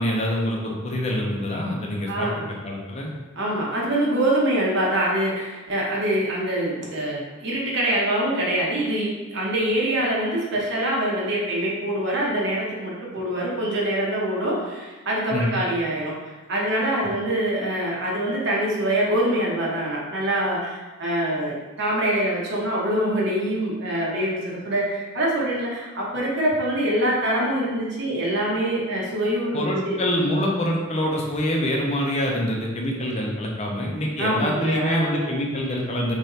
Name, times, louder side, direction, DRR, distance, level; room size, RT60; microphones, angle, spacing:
voice 1, 0.0-2.3 2.6-3.1 15.3-15.5 29.5-36.2, equal, 30° left, -1 dB, 0.6 m, -25 dB
voice 2, 2.1-2.5 3.3-30.0 34.2-35.4, right 1 dB, 55° right, -4 dB, 0.9 m, -24 dB
3.2 x 2.6 x 4.1 m, 1.2 s
head